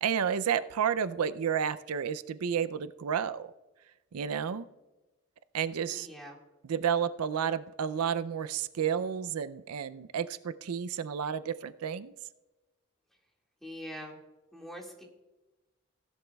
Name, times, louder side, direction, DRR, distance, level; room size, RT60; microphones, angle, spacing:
voice 1, 0.0-3.5 4.1-4.7 5.5-6.1 6.6-12.1, right 7 dB, 85° right, 14 dB, 0.4 m, -31 dB
voice 2, 5.9-6.4 13.6-14.2 14.5-15.0, equal, ahead, -1 dB, 1.9 m, -43 dB
16.5 x 11.5 x 2.3 m, 1.1 s
head